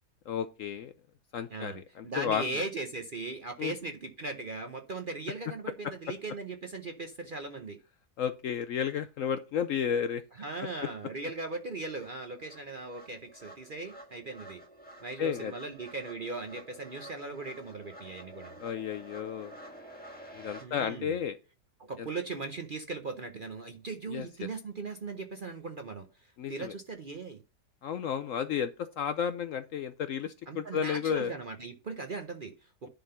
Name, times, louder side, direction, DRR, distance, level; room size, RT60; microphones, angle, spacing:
voice 1, 0.3-0.9 1.3-2.4 3.6-3.7 8.2-10.2 15.2-15.5 18.6-19.6 20.3-21.4 22.0-22.1 24.1-24.5 26.4-26.7 27.8-31.3, left 8 dB, 70° left, 0.8 m, -32 dB
voice 2, 1.5-7.8 10.4-14.6 15.0-18.6 20.6-21.2 21.8-27.4 30.5-32.9, right 3 dB, 45° right, 0.7 m, -39 dB
sound 1, 11.0-20.7, right 1 dB, 5° left, 1.3 m, -50 dB
10.5 x 3.8 x 5.6 m
omnidirectional pair, 1.8 m